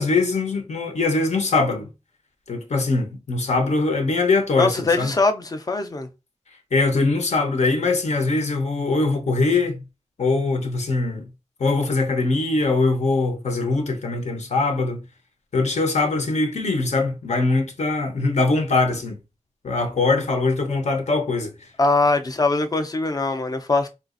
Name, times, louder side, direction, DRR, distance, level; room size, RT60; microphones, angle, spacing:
voice 1, 0.0-1.9 2.5-5.1 6.7-9.8 10.2-11.3 11.6-15.0 15.5-19.2 19.6-21.5, left 3 dB, 70° left, 0.8 m, -22 dB
voice 2, 4.6-6.1 21.8-23.9, left 3 dB, 30° left, 0.5 m, -22 dB
4.0 x 2.4 x 2.5 m
wide cardioid pair, 95°, 12 cm